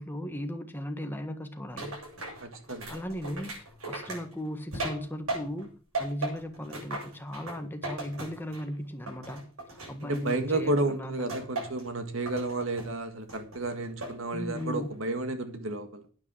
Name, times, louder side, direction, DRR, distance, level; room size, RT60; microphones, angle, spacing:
voice 1, 0.0-2.0 2.9-5.7 6.0-11.5 14.3-14.9, equal, 10° left, 6 dB, 1.5 m, -37 dB
sound 1, 1.8-5.7 5.9-8.7 9.1-10.7 11.3-11.9 12.3-12.9 13.3-14.2 14.6-15.0, right 2 dB, 90° right, 7.9 m, -38 dB
voice 2, 2.4-2.9 10.1-16.1, right 2 dB, 70° right, 8 dB, 1.8 m, -32 dB
9.9 x 9.5 x 7.4 m, 0.40 s
head